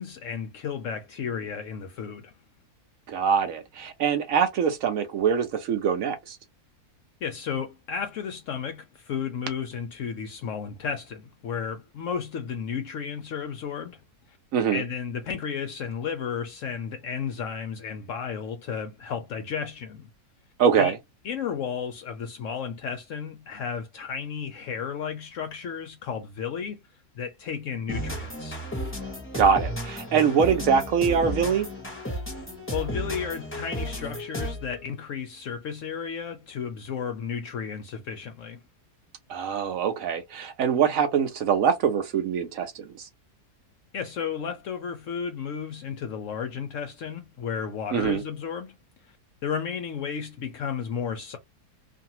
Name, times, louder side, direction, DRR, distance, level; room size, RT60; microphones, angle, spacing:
voice 1, 0.0-2.3 7.2-14.0 14.3-14.4 14.7-20.1 20.8-20.9 21.2-26.8 27.1-28.6 32.7-38.6 43.9-48.8 49.4-51.4, left 7 dB, 70° left, 0.8 m, -33 dB
voice 2, 3.1-6.4 14.5-14.8 20.6-21.0 29.3-31.7 39.3-43.1 47.9-48.2, right 7 dB, 70° right, 0.9 m, -23 dB
sound 1, 27.9-34.7, equal, 10° left, 0.7 m, -33 dB
2.6 x 2.5 x 2.8 m
omnidirectional pair, 1.7 m